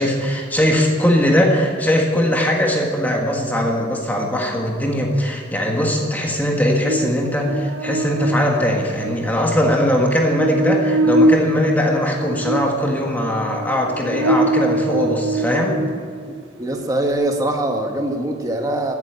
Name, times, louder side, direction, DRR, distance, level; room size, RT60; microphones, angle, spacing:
voice 1, 0.0-15.8, equal, 10° left, 0 dB, 1.6 m, -20 dB
Buzz, 6.8-16.3, right 1 dB, 80° right, 1.3 m, -23 dB
voice 2, 16.3-18.9, right 1 dB, 20° right, 3 dB, 1.5 m, -23 dB
15.0 x 8.3 x 8.7 m, 2.1 s
head